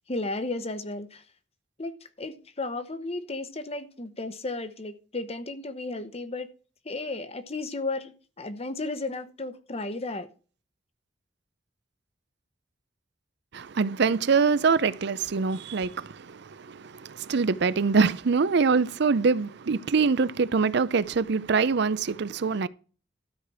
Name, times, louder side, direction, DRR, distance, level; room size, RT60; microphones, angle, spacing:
voice 1, 0.1-1.2 1.8-6.5 6.8-10.3, left 2 dB, 35° left, 1.0 m, -34 dB
voice 2, 13.5-22.7, right 5 dB, 60° right, 0.5 m, -24 dB
13.0 x 5.0 x 6.1 m
head